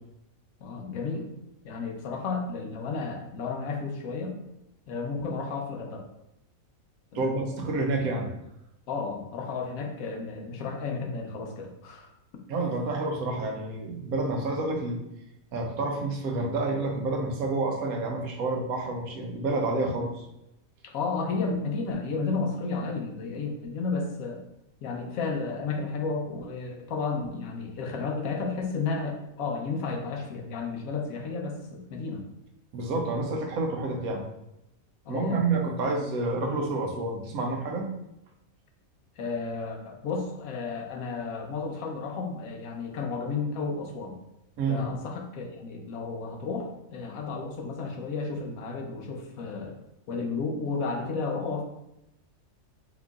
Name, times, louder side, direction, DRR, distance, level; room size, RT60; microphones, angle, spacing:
voice 1, 0.6-1.3 1.6-4.4 4.9-6.1 7.1-7.4 8.9-12.1 20.8-24.4 24.8-32.2 35.0-35.5 39.2-44.1 44.7-49.8 50.1-51.6, left 4 dB, 80° left, 2 dB, 1.2 m, -32 dB
voice 2, 7.1-8.3 12.5-15.0 15.5-20.2 32.7-34.3 35.1-37.9 44.6-44.9, right 2 dB, 90° right, 2 dB, 1.2 m, -29 dB
4.8 x 3.8 x 2.4 m, 0.86 s
omnidirectional pair, 1.4 m